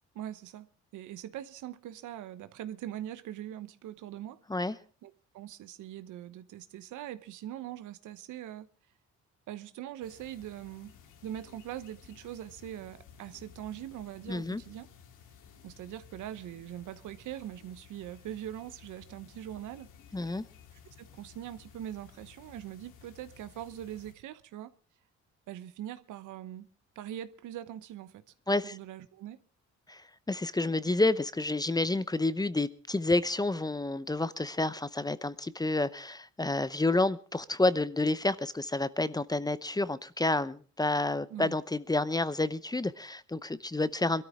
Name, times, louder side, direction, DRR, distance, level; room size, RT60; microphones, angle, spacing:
voice 1, 0.1-0.7 0.9-4.8 5.0-8.7 9.5-10.9 11.2-14.9 15.6-19.9 20.7-24.7 25.5-26.7 26.9-28.2 28.6-29.4 41.3-41.5, right 12 dB, 85° right, 1.0 m, -42 dB
sound 1, 10.0-24.1, left 7 dB, 85° left, 2.4 m, -55 dB
voice 2, 14.3-14.6 20.1-20.4 28.5-28.8 29.9-30.0 30.3-44.2, left 2 dB, 15° left, 0.7 m, -29 dB
22.0 x 13.0 x 3.6 m
cardioid pair, 90°, 30 cm